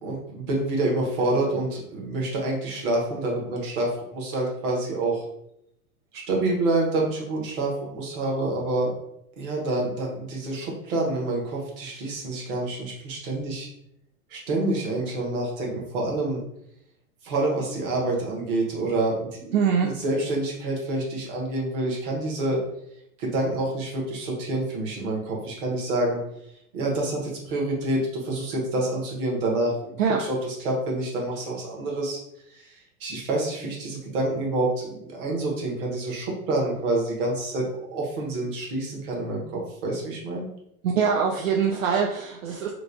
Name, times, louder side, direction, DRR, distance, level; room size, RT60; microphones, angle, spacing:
voice 1, 0.0-5.2 6.1-9.0 9.4-13.7 14.3-16.4 17.2-22.6 23.2-26.2 26.7-32.2 32.5-40.5, right 2 dB, 35° right, -2 dB, 1.0 m, -27 dB
voice 2, 19.5-20.0 30.0-30.2 40.8-42.7, right 6 dB, 60° right, 0 dB, 0.6 m, -23 dB
3.0 x 2.3 x 3.9 m, 0.78 s
hypercardioid pair, 160°, 44 cm